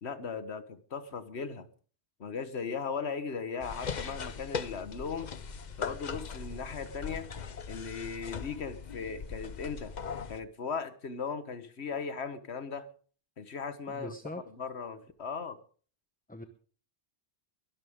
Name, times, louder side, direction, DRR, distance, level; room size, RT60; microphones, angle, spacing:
voice 1, 0.0-1.7 2.2-5.3 5.8-7.3 7.7-9.9 10.3-12.9 13.4-14.1 14.6-15.6, left 5 dB, 70° left, 1.6 m, -37 dB
sound 1, 3.6-10.4, left 6 dB, 45° left, 0.9 m, -40 dB
voice 2, 13.9-14.4 16.3-16.4, left 1 dB, 10° left, 0.8 m, -41 dB
22.5 x 12.0 x 3.6 m
omnidirectional pair, 1.1 m